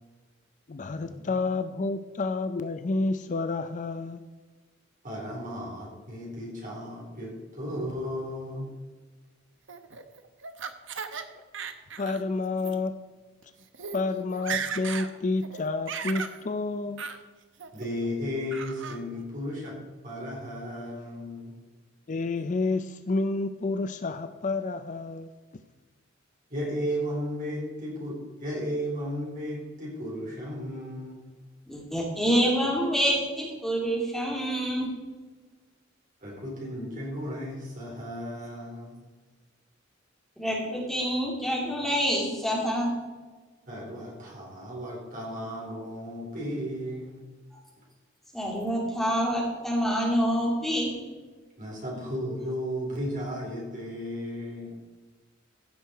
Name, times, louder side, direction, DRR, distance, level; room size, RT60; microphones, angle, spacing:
voice 1, 0.7-4.2 11.3-11.4 12.0-13.0 13.9-17.0 22.1-25.3, left 3 dB, 40° left, 10 dB, 0.5 m, -29 dB
voice 2, 5.0-8.7 17.7-19.8 20.0-21.6 26.5-31.2 36.2-39.0 43.7-47.2 51.6-54.7, equal, 45° right, -2 dB, 4.1 m, -34 dB
Laughter, 9.7-11.2 11.5-12.2 12.6-12.8 13.4-13.5 13.7-14.0 14.3-15.1 15.4-16.4 17.0-17.2 17.6-18.1 18.5-19.0, right 6 dB, 65° right, 0.9 m, -36 dB
voice 3, 31.7-34.9 40.4-42.9 48.3-50.9, equal, ahead, -4 dB, 3.0 m, -27 dB
15.5 x 6.5 x 4.6 m, 1.3 s
head